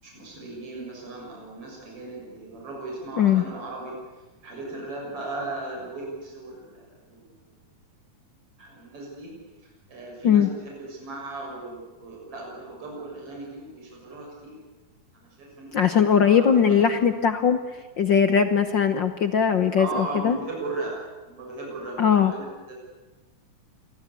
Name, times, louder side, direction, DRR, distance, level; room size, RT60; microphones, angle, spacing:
voice 1, 0.0-7.3 8.6-9.3 9.6-14.6 15.1-16.8 19.8-20.9 21.2-22.7, right 2 dB, 45° right, -2 dB, 7.7 m, -37 dB
voice 2, 15.7-17.6 18.0-20.4 22.0-22.3, left 7 dB, 65° left, 9 dB, 1.2 m, -20 dB
28.0 x 22.5 x 8.4 m, 1.2 s
omnidirectional pair, 3.5 m